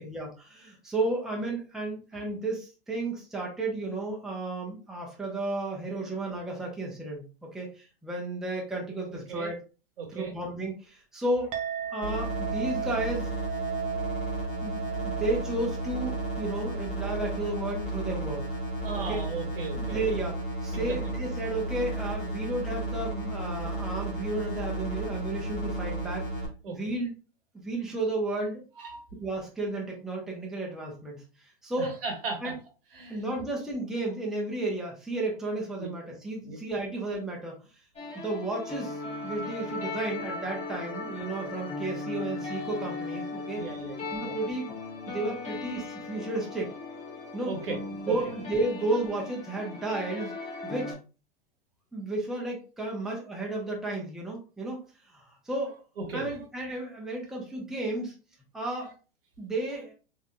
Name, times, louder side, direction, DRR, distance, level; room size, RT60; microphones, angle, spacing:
voice 1, 0.0-9.6 10.1-11.6 11.9-13.3 14.6-18.5 19.1-19.2 19.8-20.3 20.6-26.3 26.7-27.2 27.5-28.6 29.2-32.0 32.4-32.5 33.1-37.6 38.1-43.6 44.1-44.7 45.1-46.7 47.3-47.5 48.1-50.3 50.6-51.0 51.9-55.7 56.1-58.1 58.5-58.9 59.4-59.9, right 2 dB, ahead, -2 dB, 0.8 m, -33 dB
voice 2, 9.1-9.5 10.0-10.3 18.8-20.3 20.7-21.0 26.6-26.8 28.8-29.0 31.8-32.5 32.9-33.2 35.8-35.9 36.4-36.9 43.6-44.3 47.4-47.8 48.1-48.2 56.0-56.4 58.8-58.9, right 4 dB, 70° right, 3 dB, 1.1 m, -37 dB
Chink clink, 11.5-20.2, right 8 dB, 25° right, 0.4 m, -38 dB
sound 1, 12.0-26.5, right 1 dB, 40° left, 1.3 m, -33 dB
sound 2, 37.9-50.9, left 3 dB, 20° left, 1.3 m, -37 dB
3.3 x 2.7 x 2.2 m, 0.34 s
hypercardioid pair, 105°, 30 cm